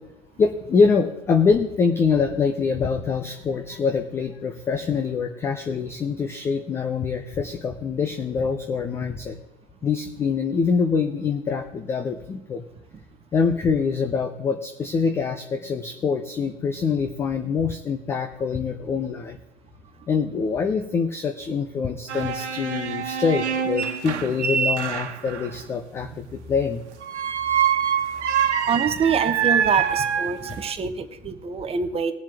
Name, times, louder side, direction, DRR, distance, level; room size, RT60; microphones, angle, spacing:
voice 1, 0.4-9.4 9.8-12.6 13.3-19.4 20.1-26.8, left 5 dB, 5° left, 7 dB, 0.3 m, -24 dB
sound 1, 22.1-25.5 27.0-30.7, right 8 dB, 65° right, 1.4 m, -25 dB
voice 2, 28.7-32.1, right 6 dB, 15° right, 8 dB, 1.0 m, -25 dB
20.0 x 7.2 x 3.4 m, 0.96 s
hypercardioid pair, 105°, 37 cm